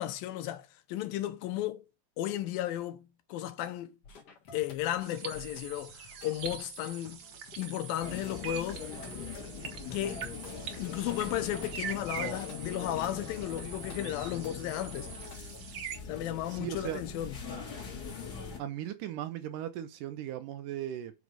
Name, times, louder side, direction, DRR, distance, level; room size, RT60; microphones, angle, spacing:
voice 1, 0.0-1.9 2.2-4.0 4.5-7.2 7.6-8.9 9.9-10.3 10.8-15.1 16.1-17.4, left 13 dB, 85° left, 2.6 m, -34 dB
sound 1, 4.0-15.4, left 6 dB, 55° left, 1.9 m, -52 dB
sound 2, 5.0-16.0, right 8 dB, 60° right, 1.9 m, -44 dB
sound 3, 8.0-18.6, left 5 dB, 35° left, 2.0 m, -42 dB
voice 2, 16.5-17.0 18.6-21.1, right 11 dB, 75° right, 2.1 m, -37 dB
6.1 x 5.3 x 4.7 m
omnidirectional pair, 4.1 m